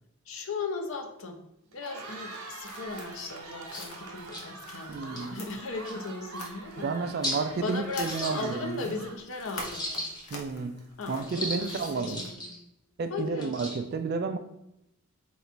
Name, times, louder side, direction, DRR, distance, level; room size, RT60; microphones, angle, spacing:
voice 1, 0.3-1.4 1.7-7.2 7.6-10.1 11.0-12.5 13.1-13.6, left 3 dB, 65° left, 3 dB, 0.7 m, -37 dB
Cheering, 1.7-9.9, right 3 dB, 85° right, 1.0 m, -44 dB
sound 1, 2.6-12.3, left 2 dB, 85° left, 0.9 m, -47 dB
sound 2, 3.7-3.9 4.3-4.4 5.0-5.3 5.8-5.9 6.4-6.5 7.2-7.4 7.9-8.9 9.5-10.4 11.2-12.5 13.3-13.8, equal, 20° left, 1.0 m, -36 dB
voice 2, 4.9-5.4 6.8-8.9 10.3-10.8 11.1-12.2 13.0-14.4, right 4 dB, 45° right, 9 dB, 0.3 m, -31 dB
4.0 x 2.5 x 4.4 m, 0.85 s
head